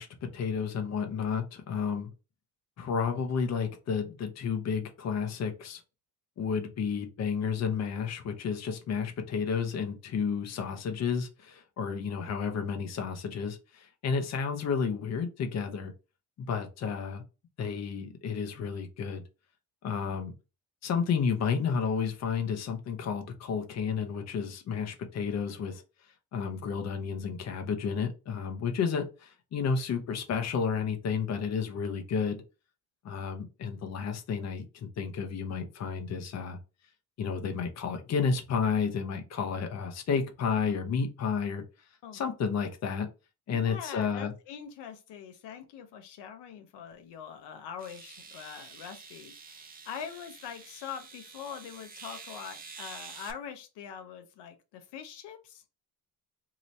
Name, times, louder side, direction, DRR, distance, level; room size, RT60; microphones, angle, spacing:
voice 1, 0.0-2.1 2.8-5.8 6.4-15.9 16.5-17.2 17.6-19.2 19.8-20.3 20.8-25.8 26.3-32.4 33.0-36.6 37.2-41.6 42.1-43.1 43.5-44.3, left 6 dB, 40° left, 0.6 m, -31 dB
voice 2, 43.5-55.6, left 7 dB, 85° left, 0.7 m, -43 dB
sound 1, 46.9-47.0 47.8-53.3, right 5 dB, 25° right, 0.4 m, -48 dB
2.8 x 2.7 x 3.1 m
cardioid pair, 175°, 40 cm